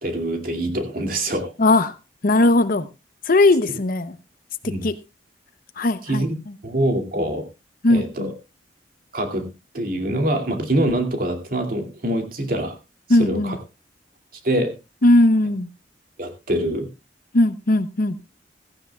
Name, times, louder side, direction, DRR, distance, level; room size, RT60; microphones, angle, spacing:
voice 1, 0.0-1.5 3.7-3.8 4.6-4.9 6.0-6.4 6.6-7.4 7.9-8.3 9.1-9.5 9.7-12.8 13.1-13.6 14.4-14.7 16.2-16.9, right 1 dB, 50° right, 5 dB, 2.5 m, -24 dB
voice 2, 1.6-1.9 2.2-2.9 3.3-4.2 4.8-4.9 5.8-6.3 7.8-8.3 13.1-13.6 15.0-15.7 17.3-18.2, left 2 dB, 50° left, 13 dB, 0.8 m, -18 dB
16.0 x 15.0 x 2.3 m, 0.26 s
head